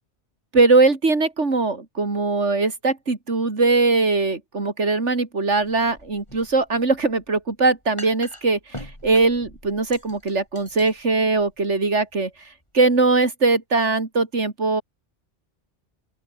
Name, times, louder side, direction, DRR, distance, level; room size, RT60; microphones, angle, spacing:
voice 1, 0.5-12.3 12.7-14.8, right 3 dB, 80° right, 3.4 m, -21 dB
sound 1, 5.5-13.3, left 1 dB, 25° left, 8.0 m, -44 dB
open air
omnidirectional pair, 1.2 m